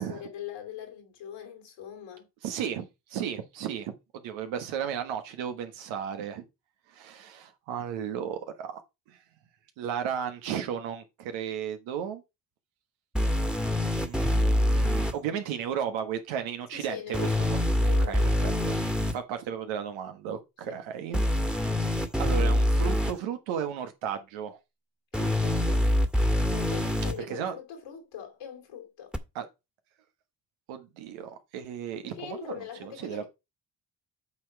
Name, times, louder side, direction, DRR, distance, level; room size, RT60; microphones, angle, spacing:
voice 1, 0.0-2.3 16.7-17.5 17.8-18.7 20.7-20.8 25.1-25.9 26.5-29.1 32.0-33.3, left 9 dB, 90° left, 3.2 m, -42 dB
voice 2, 2.4-3.9 4.2-6.4 6.9-8.8 9.1-9.2 9.8-12.2 14.0-17.6 18.0-18.7 19.1-21.8 22.2-24.6 27.2-27.5 29.3-29.4 30.7-33.2, right 8 dB, 90° right, 1.5 m, -34 dB
sound 1, 13.1-15.1 17.1-19.1 21.1-23.1 25.1-27.1 29.1-29.2, left 1 dB, ahead, 1.6 m, -25 dB
8.4 x 4.2 x 5.7 m
supercardioid pair, 50°, 45 cm